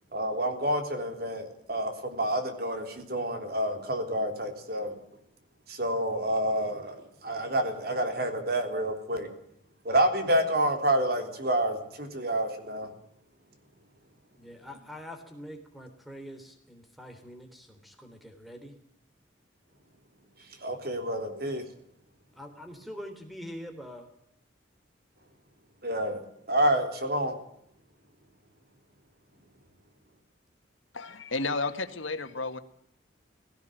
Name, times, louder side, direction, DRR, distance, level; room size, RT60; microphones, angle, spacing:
voice 1, 0.1-4.9 5.7-7.0 7.2-9.3 9.9-12.9 20.6-21.6 25.8-27.3, right 1 dB, 50° right, 6 dB, 3.7 m, -28 dB
voice 2, 14.3-18.7 22.4-24.1, equal, ahead, 6 dB, 3.6 m, -44 dB
voice 3, 30.9-32.6, left 3 dB, 90° left, 9 dB, 1.8 m, -32 dB
18.5 x 17.5 x 9.1 m, 0.72 s
head